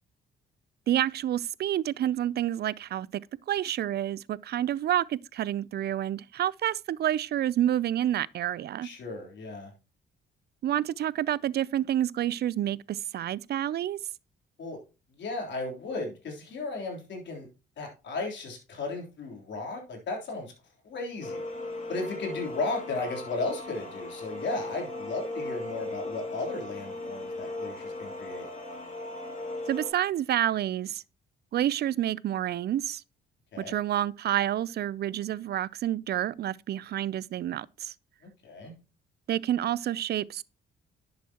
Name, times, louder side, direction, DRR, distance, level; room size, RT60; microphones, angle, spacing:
voice 1, 0.9-3.2 3.5-8.9 10.6-14.0 29.7-31.0 31.5-33.0 33.6-37.9 39.3-40.4, right 11 dB, 55° right, 0.4 m, -29 dB
voice 2, 8.8-9.7 14.6-14.8 15.2-17.5 17.8-20.5 20.8-21.4 21.9-28.5 33.5-33.7 38.2-38.7, left 3 dB, 65° left, 3.5 m, -35 dB
sound 1, 21.2-29.9, left 2 dB, 40° left, 2.5 m, -38 dB
10.5 x 7.1 x 2.9 m
cardioid pair, 90°, 20 cm